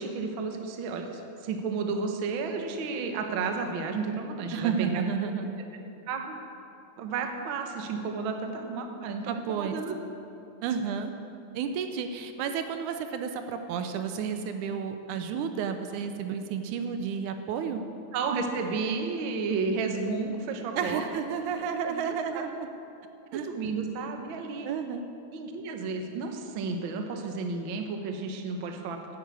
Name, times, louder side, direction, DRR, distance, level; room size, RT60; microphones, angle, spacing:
voice 1, 0.0-5.3 6.1-6.3 7.0-9.9 18.1-21.0 21.4-21.6 21.8-22.4 23.3-24.7 25.3-29.0, right 4 dB, 65° right, 4 dB, 1.3 m, -32 dB
voice 2, 4.5-5.6 9.3-9.8 10.6-11.1 11.5-17.8 20.8-22.7 23.3-23.5 24.6-25.0, right 6 dB, 80° right, 7 dB, 2.0 m, -31 dB
10.5 x 9.4 x 8.3 m, 2.7 s
omnidirectional pair, 3.7 m